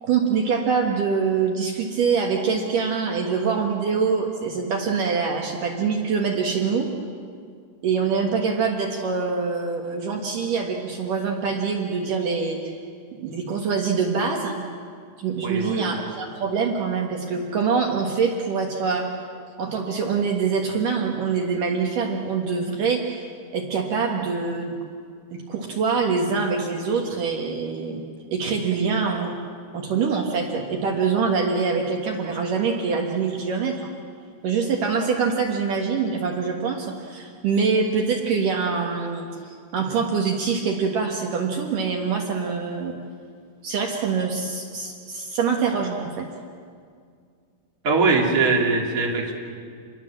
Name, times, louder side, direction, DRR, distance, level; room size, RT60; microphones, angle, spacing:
voice 1, 0.0-6.9 7.8-12.6 13.2-14.6 15.2-19.1 19.6-24.7 25.3-28.0 28.3-29.3 29.7-33.9 34.4-39.3 39.7-42.9 43.6-46.3, right 5 dB, 60° right, 1 dB, 2.9 m, -24 dB
voice 2, 15.4-15.9 47.8-49.3, right 4 dB, 25° right, -1 dB, 2.7 m, -21 dB
28.5 x 21.5 x 7.5 m, 2.2 s
omnidirectional pair, 4.6 m